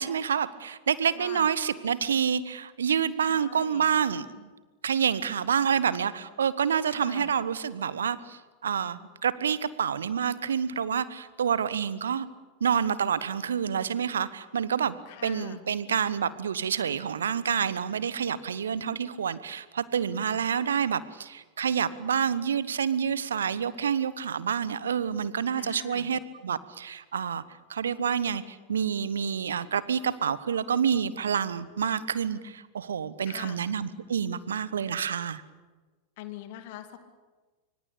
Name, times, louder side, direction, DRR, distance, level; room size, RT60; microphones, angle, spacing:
voice 1, 0.0-4.5 4.8-12.3 12.6-14.9 15.2-27.4 27.7-35.4, right 7 dB, 65° right, 17 dB, 1.1 m, -28 dB
voice 2, 1.2-1.5 3.2-3.9 6.9-7.3 15.1-15.7 25.6-26.1 33.2-33.6 36.2-37.0, left 13 dB, 50° left, 9 dB, 2.5 m, -43 dB
25.0 x 25.0 x 8.6 m, 1.3 s
figure-of-eight pair, 90°, 0 cm